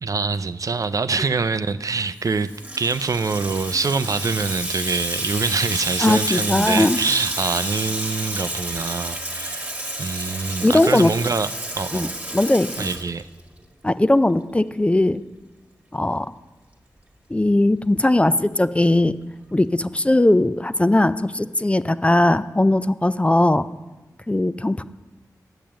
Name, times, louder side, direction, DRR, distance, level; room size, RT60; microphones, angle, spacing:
voice 1, 0.0-2.5 2.8-12.2 12.8-13.3, right 4 dB, 55° right, 12 dB, 0.5 m, -25 dB
Water tap faucet / Sink (filling or washing), 2.2-13.6, right 1 dB, 20° right, 1.7 m, -30 dB
voice 2, 6.0-7.0 10.6-11.1 11.9-12.1 12.3-12.9 13.8-15.2 15.9-16.3 17.3-19.1 19.5-23.7 24.3-24.8, left 1 dB, 15° left, 13 dB, 0.4 m, -19 dB
8.9 x 6.9 x 7.5 m, 1.1 s
cardioid pair, 45°, 7 cm